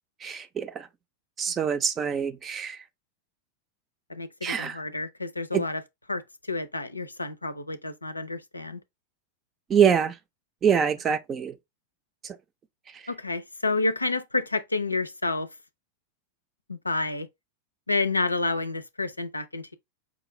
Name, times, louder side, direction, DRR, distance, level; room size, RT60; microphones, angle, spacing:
voice 1, 0.2-0.9 1.4-2.8 4.4-4.8 5.5-5.6 9.7-10.1 10.6-11.5, right 7 dB, 25° right, 0.5 m, -24 dB
voice 2, 4.1-5.8 6.1-8.8 13.1-15.5 16.7-17.3 17.9-19.7, left 3 dB, 80° left, 0.5 m, -29 dB
5.1 x 2.4 x 3.1 m
figure-of-eight pair, 90°, 0 cm